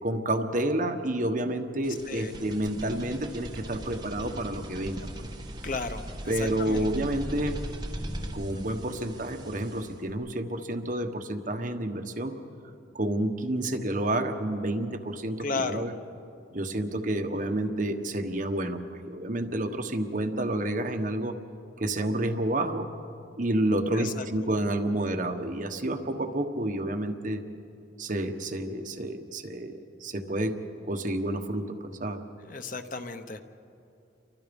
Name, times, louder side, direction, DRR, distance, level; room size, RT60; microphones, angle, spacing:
voice 1, 0.0-5.1 6.3-7.6 8.3-12.3 12.9-15.9 16.5-21.3 21.8-22.9 23.4-27.4 28.0-30.6 30.9-32.2, right 1 dB, 45° right, 5 dB, 1.4 m, -29 dB
sound 1, 1.8-10.1, right 1 dB, 25° right, 1.5 m, -39 dB
voice 2, 5.6-6.0 6.4-6.9 15.4-15.9 23.9-24.2 32.5-33.4, left 3 dB, 45° left, 8 dB, 1.1 m, -33 dB
29.5 x 24.0 x 5.4 m, 2.6 s
head